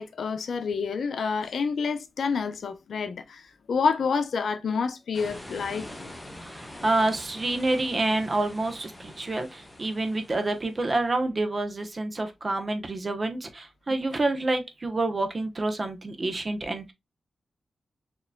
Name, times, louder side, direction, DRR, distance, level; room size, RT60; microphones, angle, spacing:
voice 1, 0.0-3.4 3.7-6.1, left 5 dB, 85° left, 0.6 m, -28 dB
sound 1, 5.1-11.1, left 1 dB, 10° left, 1.1 m, -44 dB
voice 2, 6.4-16.9, right 2 dB, 40° right, 1.0 m, -28 dB
6.6 x 3.0 x 2.3 m
wide cardioid pair, 85°, 0 cm